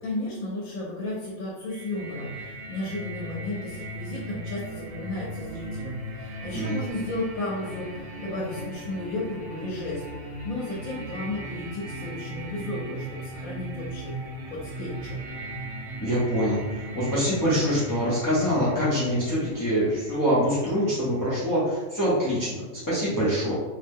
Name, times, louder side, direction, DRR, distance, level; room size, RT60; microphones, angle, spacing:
voice 1, 0.0-15.2, left 2 dB, 85° left, -5 dB, 1.2 m, -34 dB
sound 1, 1.7-21.5, right 1 dB, 55° right, 0.7 m, -38 dB
voice 2, 16.0-22.6 22.9-23.5, equal, 25° left, -10 dB, 0.4 m, -24 dB
2.8 x 2.1 x 3.4 m, 1.2 s
omnidirectional pair, 1.4 m